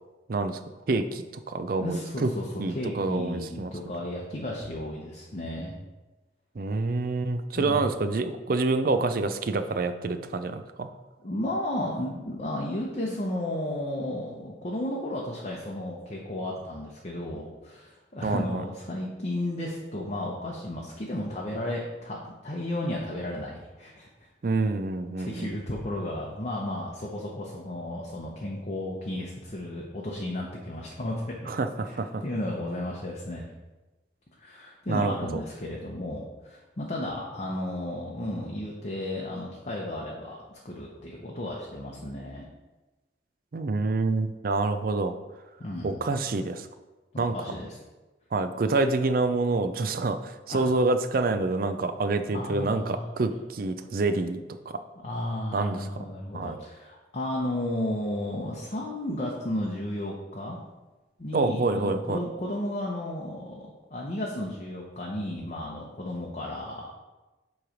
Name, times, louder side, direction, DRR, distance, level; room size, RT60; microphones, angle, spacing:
voice 1, 0.3-0.6 0.9-2.3 2.6-3.7 6.6-10.9 18.2-18.6 24.4-25.6 31.5-32.2 34.9-35.1 43.5-45.1 45.8-46.7 47.2-47.4 48.3-54.4 54.7-54.8 55.5-56.1 56.3-56.6 61.3-62.2, right 3 dB, 50° right, 9 dB, 0.4 m, -27 dB
voice 2, 1.8-5.7 7.6-7.9 11.2-24.3 25.2-31.5 31.9-33.5 34.4-42.4 45.6-46.0 47.1-47.8 50.5-50.7 52.3-53.0 55.0-60.6 61.2-66.9, left 1 dB, 40° left, -2 dB, 0.7 m, -33 dB
7.6 x 3.2 x 5.0 m, 1.1 s
head